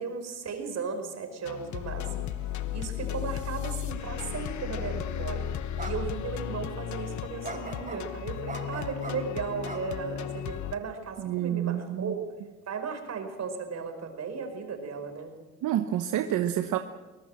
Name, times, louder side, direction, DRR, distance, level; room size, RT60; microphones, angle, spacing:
voice 1, 0.0-2.4 2.7-5.5 5.8-12.2 12.7-15.3, right 5 dB, 60° right, 5 dB, 5.0 m, -36 dB
sound 1, 1.4-10.7, left 10 dB, 70° left, 1.1 m, -35 dB
sound 2, 5.1-5.2 5.8-5.9 6.3-6.4 7.4-8.0 8.5-9.1 9.6-10.4, right 3 dB, 25° right, 5.4 m, -39 dB
voice 2, 11.2-12.1 15.6-16.8, right 11 dB, 85° right, 8 dB, 1.1 m, -28 dB
22.5 x 18.5 x 7.6 m, 1.2 s
cardioid pair, 90°, 30 cm